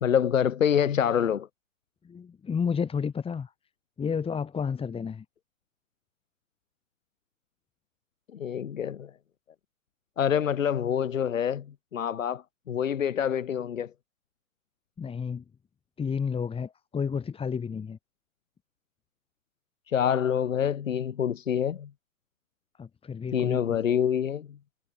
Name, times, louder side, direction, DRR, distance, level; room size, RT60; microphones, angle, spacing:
voice 1, 0.0-1.5 8.3-9.1 10.2-13.9 19.9-21.9 23.3-24.6, left 8 dB, 90° left, 2.4 m, -26 dB
voice 2, 2.0-3.5 4.0-5.2 15.0-15.4 16.0-18.0 22.8-23.8, left 6 dB, 15° left, 4.5 m, -31 dB
hypercardioid pair, 135°, 38 cm